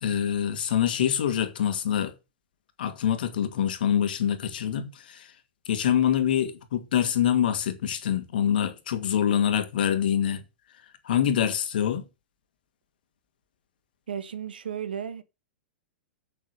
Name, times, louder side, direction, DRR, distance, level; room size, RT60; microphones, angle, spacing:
voice 1, 0.0-2.1 2.8-5.3 5.7-10.4 11.0-12.0, left 9 dB, 60° left, 2.2 m, -25 dB
voice 2, 14.1-15.2, right 8 dB, 70° right, 1.6 m, -34 dB
8.1 x 7.2 x 6.7 m
figure-of-eight pair, 100°, 5 cm